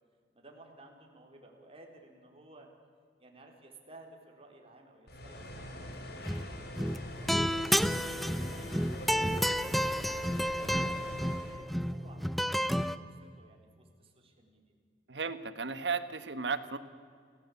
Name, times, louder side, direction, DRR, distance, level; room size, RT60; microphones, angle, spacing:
voice 1, 0.3-2.7 3.2-6.8 7.1-14.7, right 1 dB, 35° right, 2 dB, 3.8 m, -56 dB
sound 1, 5.1-11.6, left 1 dB, 65° left, 3.7 m, -43 dB
sound 2, 6.2-6.5 6.8-13.0, equal, ahead, 0.7 m, -31 dB
voice 2, 15.1-16.8, right 5 dB, 80° right, 12 dB, 1.4 m, -34 dB
30.0 x 17.0 x 8.5 m, 2.1 s
head